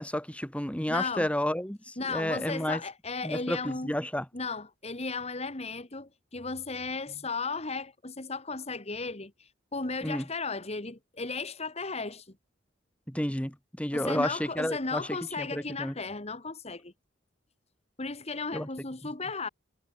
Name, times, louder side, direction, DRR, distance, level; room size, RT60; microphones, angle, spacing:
voice 1, 0.0-2.8 3.2-4.3 10.0-10.3 13.1-15.9 18.5-18.7, equal, 5° left, 2.5 m, -31 dB
voice 2, 0.9-1.3 2.0-3.9 4.3-12.3 13.9-16.9 18.0-19.5, left 4 dB, 35° left, 1.8 m, -35 dB
head